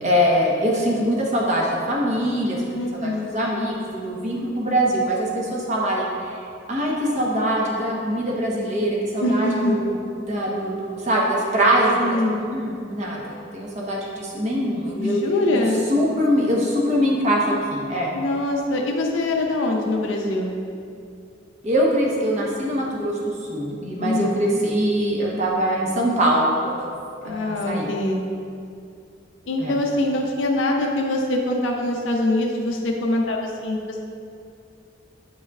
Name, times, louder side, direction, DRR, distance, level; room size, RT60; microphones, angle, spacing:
voice 1, 0.0-2.6 3.0-6.3 6.7-10.0 10.3-15.2 15.5-15.6 15.9-18.1 21.6-26.9 27.2-27.9 29.6-29.8, equal, 40° right, -3 dB, 1.0 m, -23 dB
voice 2, 2.7-3.3 9.2-9.9 12.0-12.4 15.0-15.9 18.1-20.6 24.0-24.6 27.2-28.2 29.5-34.0, left 1 dB, 80° left, 1 dB, 0.6 m, -24 dB
8.3 x 5.3 x 2.4 m, 2.5 s
head